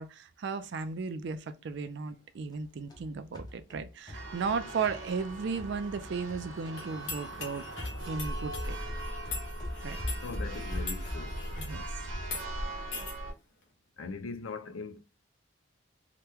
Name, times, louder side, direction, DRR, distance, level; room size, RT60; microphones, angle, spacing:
voice 1, 0.0-7.6 8.1-8.8 9.8-10.0 11.6-11.8, right 5 dB, 60° right, 0.3 m, -35 dB
sound 1, 2.5-6.8 7.0-11.4, left 1 dB, 20° left, 0.7 m, -42 dB
Church bell, 4.1-13.3, right 1 dB, 75° right, 0.7 m, -39 dB
sound 2, 6.8-11.8 12.2-12.4 12.9-13.1, left 4 dB, 70° left, 1.0 m, -42 dB
voice 2, 10.2-11.4 14.0-15.0, left 4 dB, 90° left, 0.5 m, -40 dB
2.9 x 2.2 x 3.4 m
head